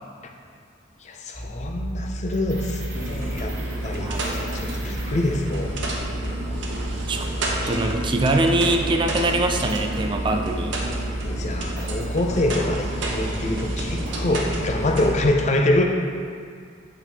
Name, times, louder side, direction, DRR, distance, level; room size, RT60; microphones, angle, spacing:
voice 1, 1.0-3.6 3.8-5.7 11.2-15.8, left 1 dB, 35° left, 3 dB, 0.5 m, -25 dB
sound 1, 1.3-15.3, right 1 dB, 50° right, 1.7 m, -31 dB
sound 2, 2.9-15.1, right 1 dB, 70° right, 0.9 m, -31 dB
voice 2, 4.0-4.3 7.1-7.3 7.7-10.8, right 2 dB, 25° right, 4 dB, 0.3 m, -23 dB
8.6 x 4.5 x 3.4 m, 2.2 s
head